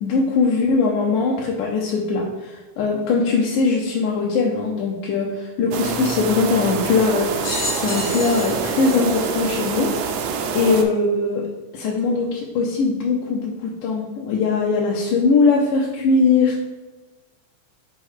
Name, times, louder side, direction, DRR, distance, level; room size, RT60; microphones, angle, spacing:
voice 1, 0.0-7.3 7.7-9.9 10.6-11.4 11.7-16.6, left 4 dB, 90° left, -2 dB, 2.3 m, -20 dB
sound 1, 5.7-10.8, right 5 dB, 75° right, 1.9 m, -26 dB
sound 2, 7.4-10.1 10.8-10.9 12.0-12.1, left 2 dB, 50° left, 1.7 m, -31 dB
5.4 x 3.2 x 5.5 m, 1.2 s
omnidirectional pair, 3.5 m